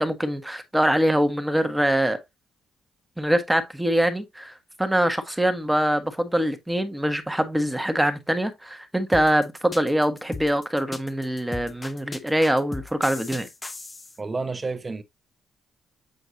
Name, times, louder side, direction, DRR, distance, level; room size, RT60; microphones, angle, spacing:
voice 1, 0.0-2.2 3.2-13.5, right 1 dB, 5° right, 1.3 m, -24 dB
sound 1, 9.1-14.2, left 3 dB, 20° left, 0.7 m, -37 dB
voice 2, 14.2-15.0, right 3 dB, 25° right, 1.0 m, -30 dB
8.0 x 4.5 x 2.8 m
cardioid pair, 90°, 0 cm